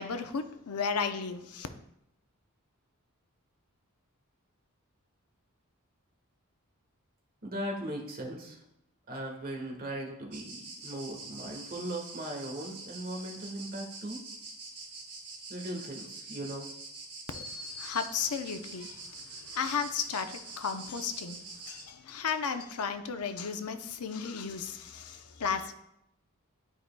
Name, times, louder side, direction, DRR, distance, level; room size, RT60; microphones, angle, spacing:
voice 1, 0.0-1.7 17.3-19.0 19.3-21.4 21.7-25.7, left 6 dB, 85° left, 8 dB, 0.6 m, -34 dB
voice 2, 7.4-8.6 9.1-14.2 15.5-16.7, right 1 dB, 40° right, 0 dB, 1.4 m, -38 dB
sound 1, 10.3-21.8, right 3 dB, 90° right, 2.1 m, -45 dB
12.0 x 4.6 x 2.2 m, 0.81 s
head